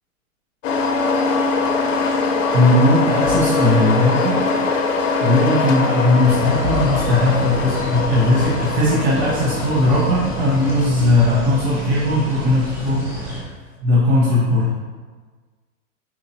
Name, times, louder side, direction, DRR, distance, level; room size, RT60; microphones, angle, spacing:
sound 1, 0.6-13.4, left 4 dB, 60° left, 0.7 m, -23 dB
voice 1, 2.5-4.4 5.2-13.4 13.8-14.7, left 1 dB, 45° right, -7 dB, 1.0 m, -18 dB
sound 2, 6.2-13.4, right 1 dB, 5° right, 0.6 m, -29 dB
4.4 x 2.9 x 2.7 m, 1.4 s
hypercardioid pair, 125°, 43 cm